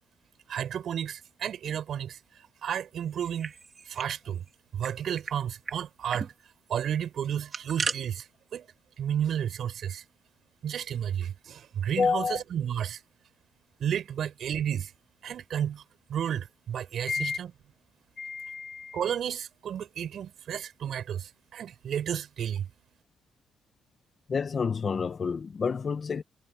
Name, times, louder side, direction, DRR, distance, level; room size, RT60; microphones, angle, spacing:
voice 1, 0.5-3.5 3.8-4.5 4.7-8.7 9.0-10.0 10.6-13.0 13.8-14.9 15.2-17.5 18.9-22.7, right 9 dB, 65° right, 7.6 m, -32 dB
sound 1, 3.1-4.2 4.5-4.6 4.8-5.4 5.7-5.8 6.1-6.3 7.2-8.0, right 5 dB, 40° right, 4.4 m, -35 dB
voice 2, 12.0-12.4 17.1-17.4 18.2-19.0 24.3-26.2, left 5 dB, 40° left, 1.6 m, -29 dB
cardioid pair, 90°, 0 cm